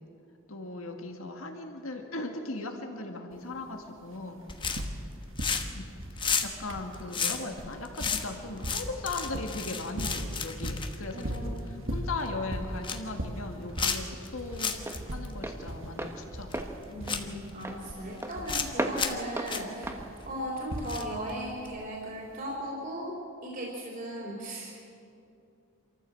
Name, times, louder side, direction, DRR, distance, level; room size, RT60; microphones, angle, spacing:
voice 1, 0.5-4.5 5.7-14.8 15.1-16.6 17.1-17.3, left 2 dB, 75° left, 4 dB, 2.0 m, -38 dB
sound 1, 3.3-3.4 3.7-5.1 5.4-21.3 22.4-22.5, equal, 65° right, 1.7 m, -39 dB
sound 2, 4.5-5.0 5.3-5.8 6.1-11.7 12.1-12.3 12.6-13.1 13.8-14.3 14.6-15.0 15.3-15.4 16.5-16.6 17.1-17.6 18.2-18.7 19.0-19.2 19.5-19.6 20.9-21.3 21.7-21.8, left 6 dB, 25° left, 1.1 m, -32 dB
voice 2, 11.1-11.7 16.9-24.8, right 1 dB, 40° right, -3 dB, 3.5 m, -37 dB
Walk footsteps, 12.6-21.3, right 1 dB, 10° right, 1.3 m, -38 dB
26.5 x 14.0 x 7.7 m, 2.6 s
head